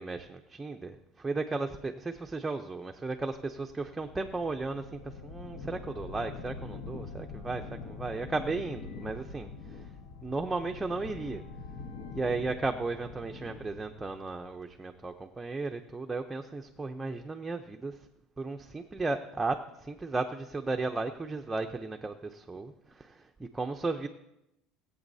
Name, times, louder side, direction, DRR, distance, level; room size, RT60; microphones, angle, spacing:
voice 1, 0.0-9.9 10.2-11.4 12.1-18.0 18.4-24.1, right 3 dB, 15° right, 4 dB, 0.6 m, -35 dB
sound 1, 3.2-15.1, left 4 dB, 70° left, 1.2 m, -45 dB
20.0 x 8.1 x 2.7 m, 0.85 s
supercardioid pair, 125°, 0 cm